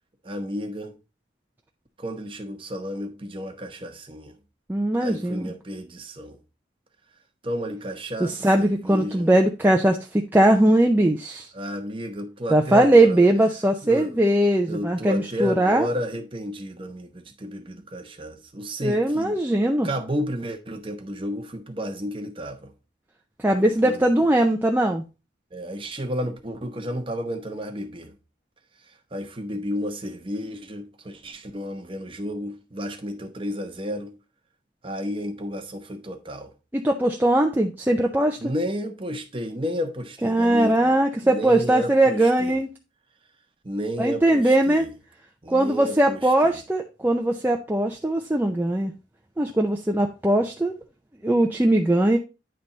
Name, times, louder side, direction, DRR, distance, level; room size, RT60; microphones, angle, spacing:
voice 1, 0.2-0.9 2.0-4.3 5.0-6.4 7.4-9.3 11.5-13.3 13.8-14.2 14.7-19.4 19.8-22.7 23.6-24.0 25.5-28.1 29.1-34.1 34.8-36.5 38.4-40.9 41.2-42.5 43.6-44.9 45.4-46.6, equal, 25° right, 0.9 m, -32 dB
voice 2, 4.7-5.5 8.2-11.5 12.5-15.9 18.8-19.9 23.4-25.0 36.7-38.5 40.2-42.7 44.0-44.9 45.5-48.9 49.4-50.7 51.2-52.2, right 1 dB, 10° right, 0.4 m, -20 dB
9.7 x 3.4 x 3.9 m
head